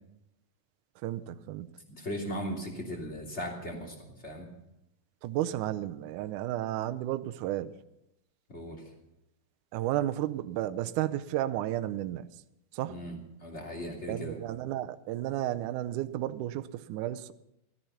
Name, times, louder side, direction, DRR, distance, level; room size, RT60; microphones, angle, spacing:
voice 1, 1.0-1.7 5.2-7.7 9.7-12.3 12.7-13.0 14.1-17.3, right 13 dB, 80° right, 1.8 m, -32 dB
voice 2, 1.9-4.5 8.5-8.8 12.9-14.4, equal, 20° left, 2.8 m, -38 dB
15.5 x 14.0 x 5.7 m
omnidirectional pair, 4.3 m